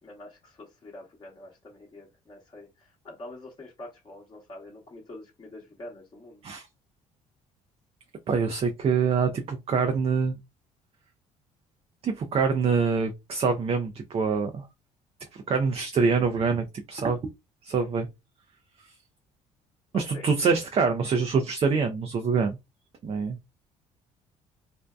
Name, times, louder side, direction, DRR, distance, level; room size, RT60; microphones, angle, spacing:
voice 1, 0.0-6.4 17.8-18.1 19.9-20.3, left 1 dB, 30° left, 1.0 m, -46 dB
voice 2, 8.3-10.4 12.0-14.7 15.3-17.2 17.6-18.1 19.9-22.6 23.0-23.4, right 5 dB, 40° right, 0.5 m, -25 dB
2.6 x 2.1 x 2.2 m
hypercardioid pair, 60°, 16 cm